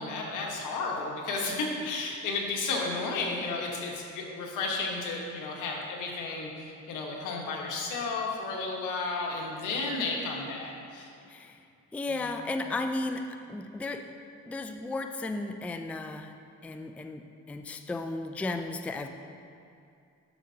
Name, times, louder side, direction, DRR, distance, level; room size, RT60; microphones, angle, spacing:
voice 1, 0.0-11.1, left 3 dB, 85° left, -1 dB, 1.4 m, -33 dB
voice 2, 11.3-11.6 11.9-14.2 14.5-16.3 16.6-19.1, left 2 dB, 5° left, 7 dB, 0.3 m, -34 dB
11.0 x 6.5 x 2.8 m, 2.5 s
cardioid pair, 90°, 30 cm